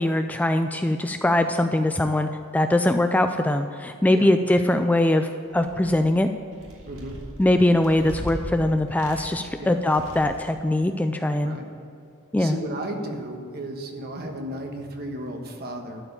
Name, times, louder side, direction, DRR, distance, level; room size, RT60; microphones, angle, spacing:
voice 1, 0.0-6.3 7.4-11.6 12.3-12.6, left 1 dB, 5° left, 7 dB, 0.3 m, -22 dB
sound 1, 5.5-6.1 6.5-8.4 8.9-9.5 9.8-10.5, equal, 65° right, 2.0 m, -39 dB
voice 2, 6.8-7.2 9.6-9.8 11.4-11.7 12.4-16.0, right 1 dB, 45° right, 3 dB, 1.4 m, -34 dB
12.0 x 4.8 x 8.5 m, 2.5 s
head